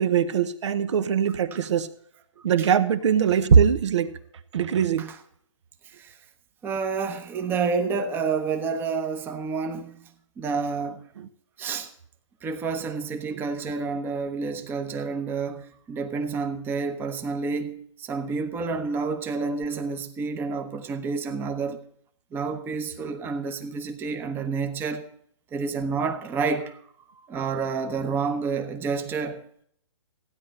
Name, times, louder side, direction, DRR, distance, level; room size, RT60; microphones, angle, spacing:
voice 1, 0.0-1.9 2.4-4.1 4.5-5.1 11.2-11.3 13.3-13.4, right 7 dB, 60° right, 1.1 m, -21 dB
voice 2, 5.9-6.2 6.6-10.0 10.4-11.0 11.6-11.9 12.4-21.8 22.3-25.1 25.5-26.8 27.2-29.4, right 5 dB, 15° right, 1.0 m, -29 dB
15.5 x 10.0 x 4.3 m
hypercardioid pair, 150°, 17 cm